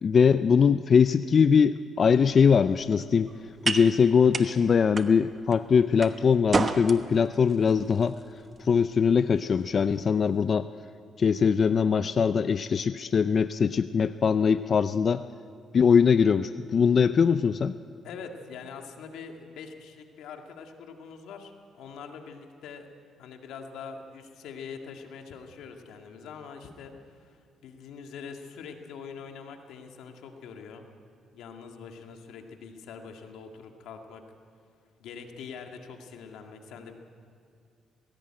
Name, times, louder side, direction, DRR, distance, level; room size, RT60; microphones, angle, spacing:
voice 1, 0.0-3.3 3.6-8.2 8.6-10.7 11.2-15.2 15.7-17.7, left 6 dB, 45° left, 12 dB, 0.4 m, -22 dB
sound 1, 2.1-10.5, right 4 dB, 35° right, 1.1 m, -35 dB
voice 2, 18.0-22.9 23.2-27.4 27.6-30.9 31.3-34.2 35.0-37.0, left 6 dB, 85° left, 4 dB, 1.9 m, -43 dB
18.5 x 17.0 x 8.9 m, 2.3 s
cardioid pair, 90°, 0 cm